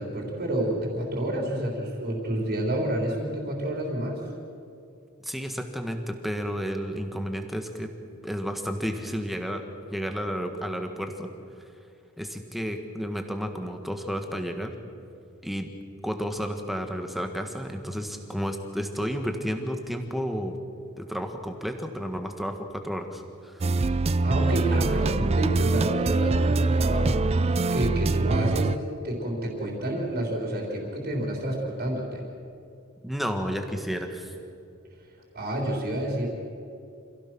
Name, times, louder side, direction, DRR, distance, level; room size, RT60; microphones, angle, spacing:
voice 1, 0.0-4.2 24.2-28.8 29.0-32.2 35.3-36.3, right 1 dB, 45° right, -1 dB, 3.8 m, -29 dB
voice 2, 5.2-7.9 8.2-11.3 12.2-14.7 15.4-15.7 16.0-20.6 21.0-23.6 33.0-34.3, equal, ahead, 5 dB, 1.5 m, -32 dB
sound 1, 23.6-28.8, right 3 dB, 30° right, 0.4 m, -24 dB
26.5 x 16.5 x 6.1 m, 2.5 s
head